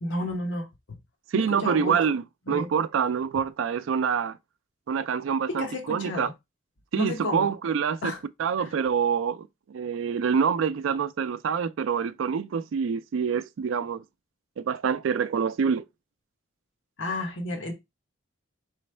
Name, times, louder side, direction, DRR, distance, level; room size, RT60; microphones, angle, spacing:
voice 1, 0.0-1.0 1.3-2.0 2.5-2.7 5.5-6.3 6.9-7.5 8.0-8.2 8.6-8.7 17.0-17.7, left 2 dB, 75° left, 1.0 m, -32 dB
voice 2, 1.3-4.4 4.9-6.3 6.9-8.0 8.4-14.0 14.6-15.8, right 6 dB, 85° right, 0.4 m, -26 dB
4.3 x 3.2 x 3.2 m
head